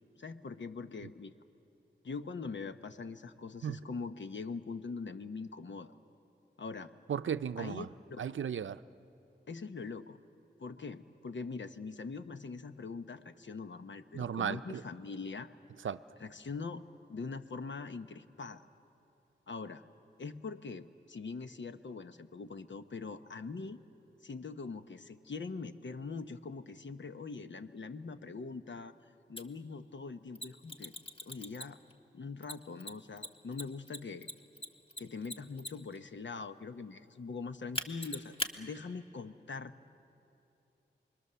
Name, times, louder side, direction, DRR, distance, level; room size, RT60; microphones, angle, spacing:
voice 1, 0.2-1.3 2.0-5.9 6.6-6.9 7.6-8.2 9.5-10.2 10.6-15.5 16.2-16.8 17.1-18.6 19.5-19.8 20.2-23.8 24.2-28.9 29.3-30.9 31.2-31.8 32.1-34.3 35.0-39.7, left 4 dB, 70° left, 9 dB, 1.0 m, -42 dB
voice 2, 7.1-7.9 8.2-8.8 14.1-14.8 15.8-16.0, right 8 dB, 85° right, 12 dB, 0.5 m, -35 dB
Mechanisms, 29.4-29.5 30.3-31.9 32.4-36.0 37.7-38.5, left 1 dB, 30° left, 1.6 m, -40 dB
29.0 x 22.5 x 6.9 m, 3.0 s
cardioid pair, 45°, 20 cm